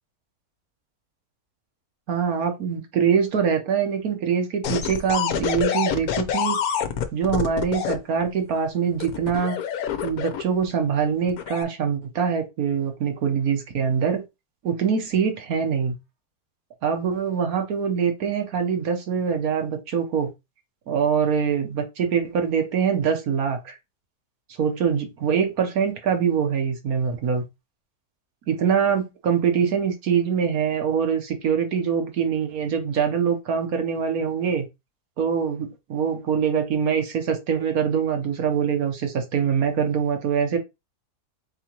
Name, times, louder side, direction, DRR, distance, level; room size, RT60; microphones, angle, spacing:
voice 1, 2.1-6.8 7.1-9.6 10.0-14.2 14.6-15.9 16.8-20.3 20.9-23.8 24.6-27.4 28.5-34.7 35.2-40.6, right 7 dB, 60° right, 1.4 m, -24 dB
sound 1, 4.6-8.0 9.0-10.6 11.3-11.6, left 8 dB, 65° left, 1.1 m, -26 dB
4.2 x 3.8 x 2.9 m
omnidirectional pair, 1.8 m